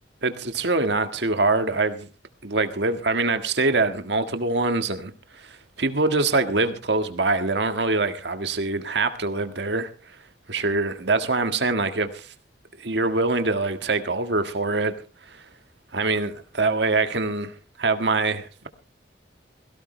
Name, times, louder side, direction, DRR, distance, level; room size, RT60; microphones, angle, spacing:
voice 1, 0.2-2.1 2.4-9.9 10.5-12.3 12.8-14.9 15.2-15.4 15.9-17.5 17.8-18.7, right 3 dB, 70° right, 1.7 m, -24 dB
17.5 x 17.0 x 3.3 m
head